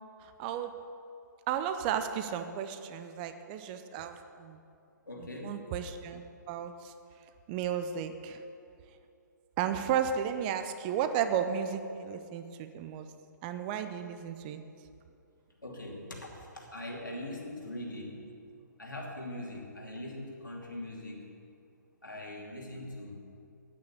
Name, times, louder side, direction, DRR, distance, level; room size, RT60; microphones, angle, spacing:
voice 1, 0.2-0.7 1.5-4.6 5.2-6.9 7.5-8.4 9.6-13.1 13.4-14.6, right 8 dB, 25° right, 9 dB, 0.6 m, -34 dB
voice 2, 5.1-5.6 15.6-18.3 18.8-21.2 22.0-23.2, left 1 dB, 85° left, -1 dB, 2.8 m, -41 dB
9.4 x 8.7 x 8.4 m, 2.5 s
figure-of-eight pair, 130°, 10 cm